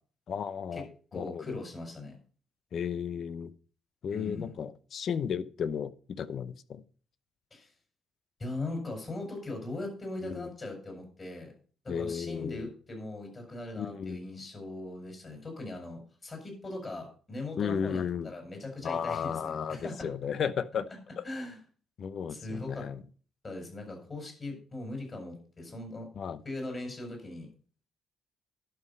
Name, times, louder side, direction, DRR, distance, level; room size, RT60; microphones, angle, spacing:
voice 1, 0.3-0.9 1.1-1.6 2.7-3.5 4.0-6.8 10.2-10.5 11.9-12.7 13.8-14.3 17.6-18.3 18.8-20.9 21.2-21.3 22.0-23.0 26.2-26.4, left 7 dB, 60° left, 16 dB, 0.7 m, -34 dB
voice 2, 1.1-2.2 4.1-4.6 7.5-7.7 8.4-11.5 11.8-20.1 21.2-21.6 22.3-22.9 23.4-26.1 26.4-27.5, left 2 dB, 35° left, 2 dB, 5.0 m, -40 dB
11.5 x 5.7 x 5.4 m, 0.41 s
cardioid pair, 90°, 0 cm